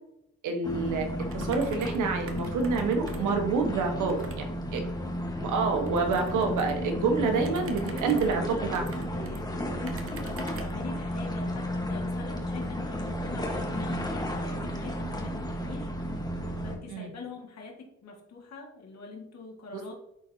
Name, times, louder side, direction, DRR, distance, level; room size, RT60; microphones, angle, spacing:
voice 1, 0.4-4.2 4.7-4.8 5.4-8.8 16.9-17.1 19.7-19.8, right 4 dB, 80° right, 4 dB, 1.3 m, -27 dB
sound 1, 0.6-16.8, equal, 15° left, 1.3 m, -33 dB
sound 2, 1.3-2.0 2.3-3.4 4.1-4.4 5.8-6.8 7.4-9.4 9.9-10.8, right 3 dB, 45° right, 1.1 m, -45 dB
voice 2, 3.5-4.3 7.3-15.9 16.6-17.7 18.0-19.9, left 4 dB, 60° left, 0 dB, 1.9 m, -43 dB
10.0 x 4.0 x 2.8 m, 0.80 s
cardioid pair, 90°, 30 cm